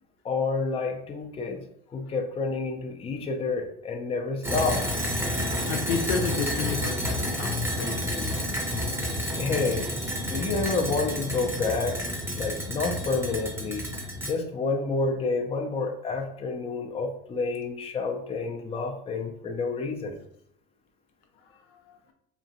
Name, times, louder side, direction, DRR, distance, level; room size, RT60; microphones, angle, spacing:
voice 1, 0.2-1.7 1.9-4.8 9.4-9.9 10.3-12.1 12.4-13.9 14.3-20.2, left 4 dB, 15° left, 2 dB, 0.5 m, -29 dB
sound 1, 4.4-14.3, left 1 dB, 5° right, 0.8 m, -30 dB
voice 2, 5.7-8.4 21.7-21.8, left 5 dB, 75° left, 4 dB, 0.6 m, -31 dB
2.9 x 2.4 x 2.6 m, 0.69 s
hypercardioid pair, 85°, 33 cm